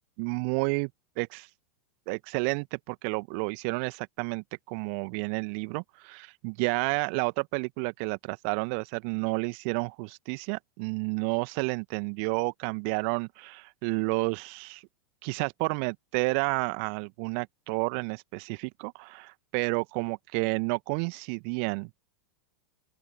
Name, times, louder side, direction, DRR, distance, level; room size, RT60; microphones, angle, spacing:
voice 1, 0.2-0.9 1.2-1.5 2.1-14.8 15.2-22.1, right 40 dB or more, 45° right, 1.5 m, -31 dB
open air
figure-of-eight pair, 90°, 9 cm